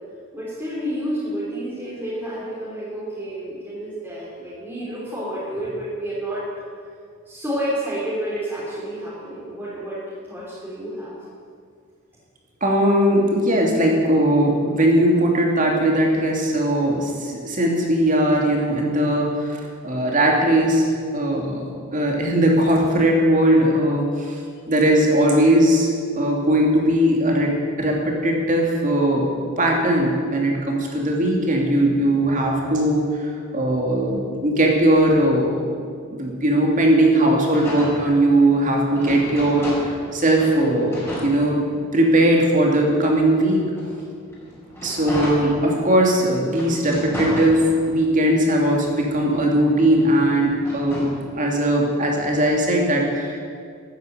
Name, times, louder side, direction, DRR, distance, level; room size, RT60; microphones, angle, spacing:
voice 1, 0.3-6.5 7.3-11.1, right 1 dB, 10° right, -9 dB, 3.5 m, -30 dB
voice 2, 12.6-24.4 24.7-25.9 26.2-27.5 27.8-35.6 36.1-41.6 41.9-43.6 44.8-51.1 51.3-53.4, right 1 dB, 35° right, 0 dB, 2.7 m, -19 dB
sound 1, 37.5-40.1 40.4-42.0 42.6-46.0 46.5-48.1 48.5-51.2, left 1 dB, 10° left, 4.7 m, -34 dB
13.0 x 9.4 x 9.0 m, 2.1 s
head